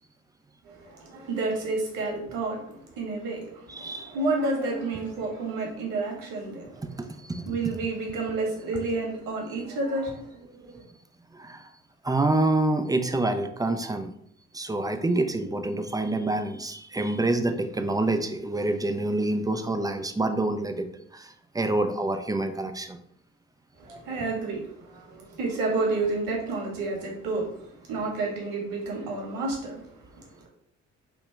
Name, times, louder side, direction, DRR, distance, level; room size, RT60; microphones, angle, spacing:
voice 1, 0.6-7.0 7.4-10.8 23.8-30.5, right 3 dB, 60° right, -2 dB, 1.7 m, -30 dB
voice 2, 3.7-4.1 7.0-7.4 11.3-11.7 12.0-14.1 14.5-20.9 21.1-23.0 23.9-24.0, right 2 dB, 10° right, 7 dB, 0.5 m, -27 dB
5.0 x 3.0 x 3.4 m, 0.70 s
figure-of-eight pair, 45°, 39 cm